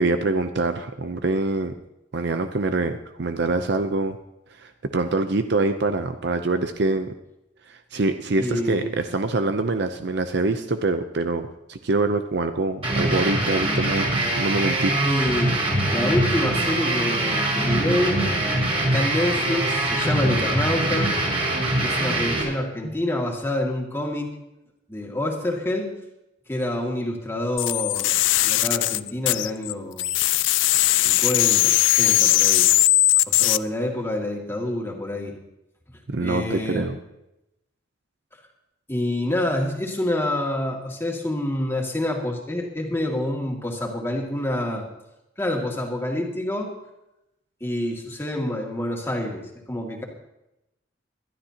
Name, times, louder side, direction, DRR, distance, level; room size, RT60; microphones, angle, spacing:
voice 1, 0.0-1.7 2.1-4.2 4.6-7.1 7.7-15.0 36.1-37.0, right 3 dB, 65° right, 8 dB, 0.7 m, -25 dB
voice 2, 8.4-8.9 15.0-15.6 15.9-18.2 18.8-21.1 21.8-24.3 24.9-25.9 26.5-28.2 28.4-30.1 31.0-32.7 33.3-35.3 36.2-36.9 38.9-44.9 45.4-46.7 47.6-50.0, left 1 dB, 15° left, 0 dB, 2.2 m, -27 dB
sound 1, 12.8-22.4, right 1 dB, 30° right, 5.2 m, -23 dB
sound 2, 27.6-29.7 30.0-33.6, left 15 dB, 85° left, 0.4 m, -19 dB
21.5 x 12.5 x 2.9 m, 0.89 s
head